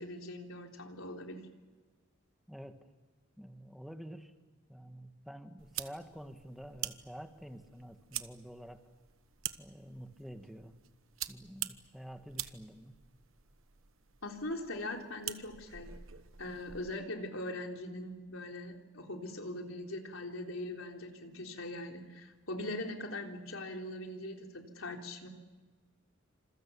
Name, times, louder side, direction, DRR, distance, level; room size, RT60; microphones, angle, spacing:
voice 1, 0.0-1.5 14.2-15.9 16.4-25.3, left 1 dB, 85° left, 2 dB, 3.7 m, -41 dB
voice 2, 2.5-2.8 3.4-4.3 4.7-8.8 9.6-10.8 11.3-13.0, equal, ahead, 7 dB, 1.7 m, -48 dB
sound 1, 5.6-17.0, right 12 dB, 75° right, 1.1 m, -46 dB
28.5 x 27.0 x 7.1 m, 1.3 s
head